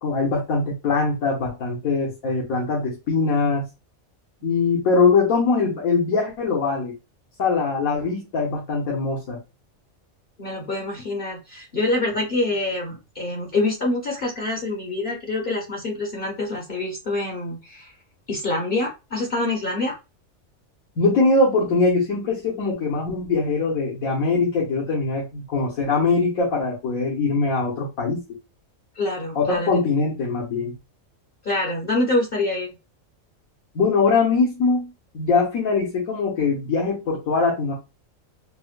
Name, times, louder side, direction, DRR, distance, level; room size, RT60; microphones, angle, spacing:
voice 1, 0.0-3.7 4.4-6.9 7.4-9.4 21.0-28.2 29.3-30.7 33.7-37.7, left 4 dB, 80° left, -4 dB, 1.5 m, -22 dB
voice 2, 10.4-17.9 18.3-19.9 29.0-29.7 31.4-32.7, left 2 dB, 45° left, 0 dB, 0.9 m, -26 dB
4.2 x 2.1 x 2.4 m, 0.26 s
omnidirectional pair, 1.4 m